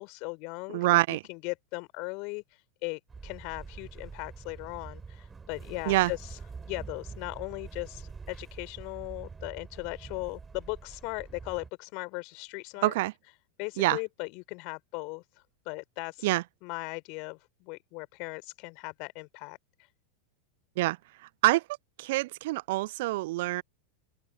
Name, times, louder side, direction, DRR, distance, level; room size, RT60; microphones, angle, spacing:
voice 1, 0.0-0.9 1.3-2.4 2.8-6.4 6.7-12.9 13.6-15.2 15.6-16.3 16.6-19.6, left 31 dB, 50° left, 4.4 m, -38 dB
voice 2, 0.7-1.2 5.9-6.1 12.8-13.1 13.8-14.0 16.2-16.4 20.8-21.0 21.4-21.6 22.0-23.6, right 19 dB, 60° right, 0.3 m, -25 dB
sound 1, 3.1-11.7, right 5 dB, 15° right, 3.9 m, -45 dB
open air
figure-of-eight pair, 90°, 0 cm